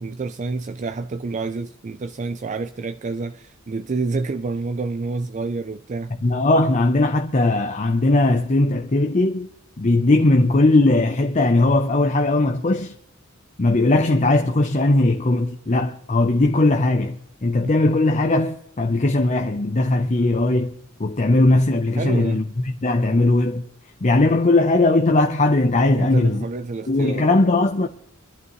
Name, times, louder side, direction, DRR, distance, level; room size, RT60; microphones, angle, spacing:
voice 1, 0.0-6.2 22.0-22.4 25.9-27.3, right 3 dB, 35° right, 0.4 m, -28 dB
voice 2, 6.2-9.5 9.8-12.9 13.6-23.7 24.0-26.4 26.9-27.9, left 2 dB, 35° left, 0.7 m, -19 dB
25.0 x 11.0 x 3.1 m
head